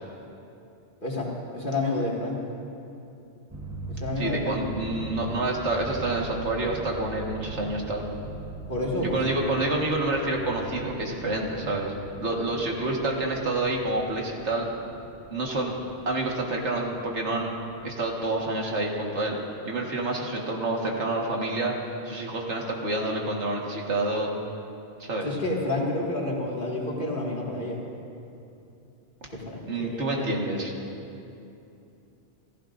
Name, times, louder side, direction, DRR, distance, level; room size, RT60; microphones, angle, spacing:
voice 1, 1.0-2.4 3.9-4.7 8.7-9.2 25.2-27.8 29.3-30.4, left 2 dB, 45° left, -3 dB, 2.2 m, -29 dB
sound 1, 3.5-19.5, right 1 dB, 15° right, 0.8 m, -41 dB
voice 2, 4.2-8.1 9.0-11.9 12.2-14.7 15.3-15.8 16.1-17.6 17.8-19.4 19.6-21.7 22.0-24.3 25.0-25.3 29.7-30.7, right 2 dB, 65° right, -1 dB, 1.9 m, -28 dB
28.0 x 14.5 x 2.6 m, 2.7 s
omnidirectional pair, 1.2 m